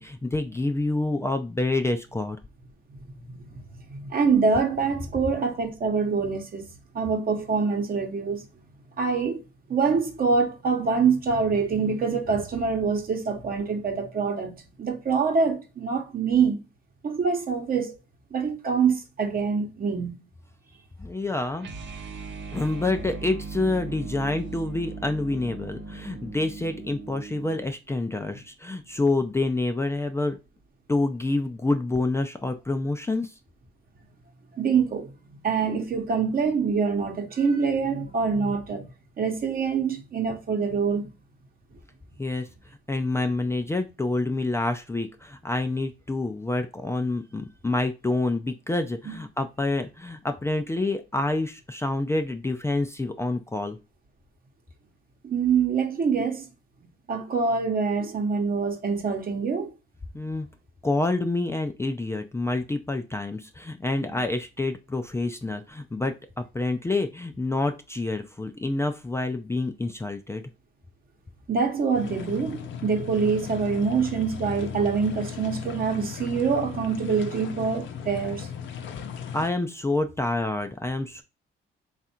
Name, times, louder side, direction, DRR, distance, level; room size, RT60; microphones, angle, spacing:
voice 1, 0.0-2.4 21.0-21.7 22.5-30.4 30.9-33.3 42.2-42.5 42.9-53.8 60.1-60.5 60.8-70.4 79.3-81.2, left 2 dB, 15° left, 0.4 m, -27 dB
voice 2, 2.9-3.5 3.9-6.7 6.9-8.4 9.0-9.4 9.7-14.5 14.8-16.6 17.0-17.9 18.3-20.2 34.5-35.1 35.4-38.8 39.2-41.1 49.1-49.2 55.2-56.5 57.1-59.7 71.5-78.5, right 5 dB, 45° right, 1.0 m, -25 dB
sound 1, 21.6-27.7, right 4 dB, 65° right, 0.8 m, -38 dB
sound 2, 71.9-79.5, left 7 dB, 70° left, 0.7 m, -37 dB
3.4 x 2.5 x 4.2 m
cardioid pair, 90°, 20 cm